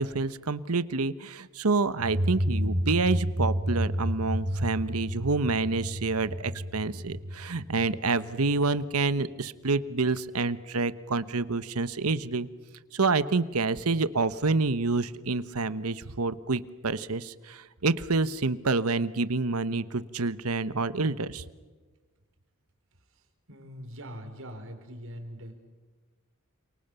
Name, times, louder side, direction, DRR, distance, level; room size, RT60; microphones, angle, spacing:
voice 1, 0.0-12.5 12.9-21.4, right 3 dB, 85° right, 14 dB, 1.1 m, -28 dB
sound 1, 2.0-8.5, equal, 45° right, 6.6 m, -31 dB
voice 2, 23.5-25.6, equal, 65° right, 5 dB, 5.2 m, -42 dB
29.5 x 28.0 x 7.0 m, 1.3 s
head